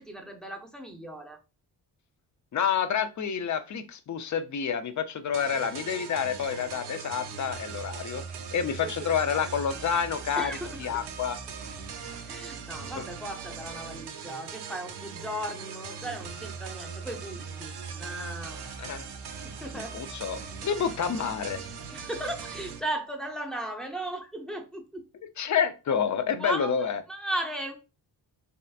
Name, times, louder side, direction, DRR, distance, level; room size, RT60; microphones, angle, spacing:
voice 1, 0.0-1.4 8.8-8.9 10.4-10.9 12.3-18.6 19.4-20.0 21.9-25.0 26.4-26.7 27.1-27.8, right 1 dB, ahead, 0.6 m, -36 dB
voice 2, 2.5-8.2 8.5-11.4 13.0-13.1 18.8-19.1 19.7-21.6 25.4-27.0, left 7 dB, 45° left, 0.5 m, -29 dB
sound 1, 5.3-22.8, right 6 dB, 60° right, 0.7 m, -40 dB
3.2 x 2.8 x 2.3 m
cardioid pair, 80°, 43 cm